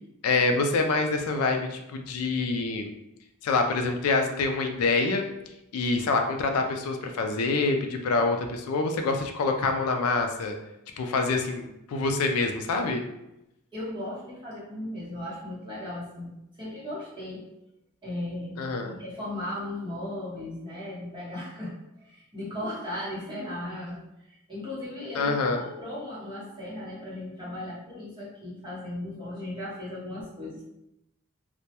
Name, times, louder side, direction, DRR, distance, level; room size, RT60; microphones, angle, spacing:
voice 1, 0.2-2.9 3.4-5.3 5.7-10.6 11.0-13.0 18.6-18.9 25.2-25.6, left 3 dB, 75° left, 5 dB, 0.3 m, -26 dB
voice 2, 13.7-16.3 16.6-17.5 18.0-24.0 24.3-30.7, left 1 dB, 20° right, -8 dB, 0.8 m, -37 dB
2.2 x 2.1 x 2.8 m, 0.87 s
head